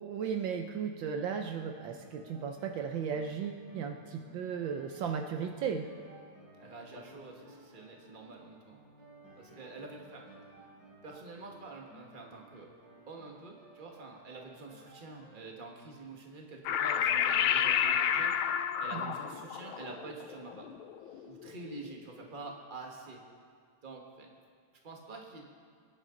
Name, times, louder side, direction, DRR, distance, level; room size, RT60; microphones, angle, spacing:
voice 1, 0.0-5.9 18.9-19.1, right 7 dB, 75° right, 4 dB, 1.4 m, -35 dB
sound 1, 1.7-15.4, right 1 dB, 50° right, 3.6 m, -57 dB
voice 2, 6.6-8.8 9.4-10.2 11.0-12.7 13.1-18.3 18.8-20.7 21.2-23.2 23.8-24.3 24.8-25.4, right 3 dB, 25° right, 0 dB, 1.5 m, -47 dB
sound 2, 16.7-21.5, left 9 dB, 85° left, 1.5 m, -30 dB
23.0 x 10.5 x 3.8 m, 2.1 s
omnidirectional pair, 2.2 m